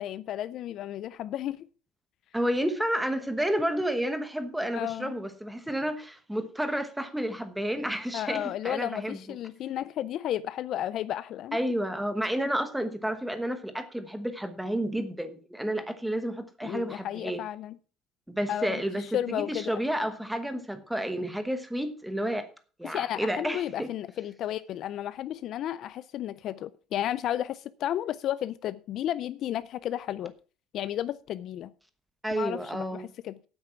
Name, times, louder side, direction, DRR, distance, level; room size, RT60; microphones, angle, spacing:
voice 1, 0.0-1.6 4.7-5.1 8.1-11.6 16.6-17.8 18.5-19.7 22.8-30.3 30.7-31.7 32.3-33.4, left 11 dB, 45° left, 0.4 m, -33 dB
voice 2, 2.3-9.2 11.5-17.4 18.3-22.5 22.8-23.9 32.2-33.1, equal, 5° right, 1.1 m, -31 dB
9.2 x 8.8 x 5.8 m
cardioid pair, 175°, 0 cm